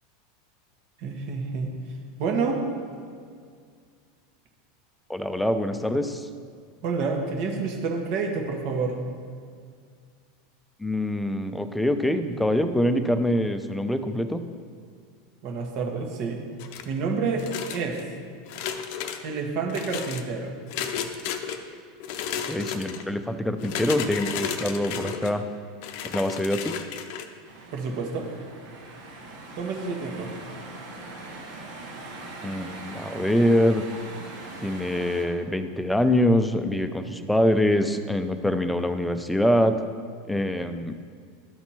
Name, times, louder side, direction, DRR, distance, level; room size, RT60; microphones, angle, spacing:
voice 1, 1.0-1.7 2.2-2.6 6.8-9.0 15.4-16.4 16.8-17.4 17.7-18.0 19.2-20.5 27.7-28.3 29.5-30.3, right 4 dB, 55° right, 2 dB, 1.4 m, -28 dB
voice 2, 5.1-6.3 10.8-14.4 22.5-25.4 26.0-26.7 32.4-33.8 34.6-39.8 40.3-40.9, left 1 dB, 5° left, 8 dB, 0.6 m, -24 dB
sound 1, 16.6-17.0 17.4-18.0 18.5-19.2 19.7-20.2 20.7-21.6 22.0-23.0 23.6-25.3 25.8-27.3, left 8 dB, 60° left, 0.6 m, -33 dB
sound 2, 27.4-35.3, right 2 dB, 75° right, 1.5 m, -41 dB
12.0 x 4.3 x 4.3 m, 2.1 s
hypercardioid pair, 85°, 0 cm